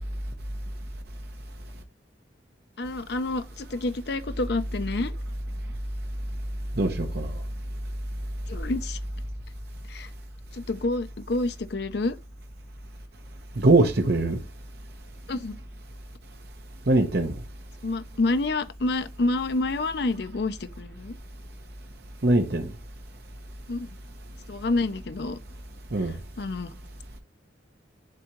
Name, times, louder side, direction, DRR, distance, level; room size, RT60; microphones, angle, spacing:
voice 1, 2.8-5.1 8.5-9.0 9.9-10.1 10.5-12.2 15.3-15.6 17.8-21.1 23.7-23.9 24.5-25.4 26.4-26.7, left 2 dB, 60° left, 0.6 m, -28 dB
voice 2, 6.8-7.3 13.6-14.4 16.9-17.3 22.2-22.7 25.9-26.1, right 2 dB, 60° right, 0.9 m, -21 dB
10.5 x 3.6 x 3.1 m
head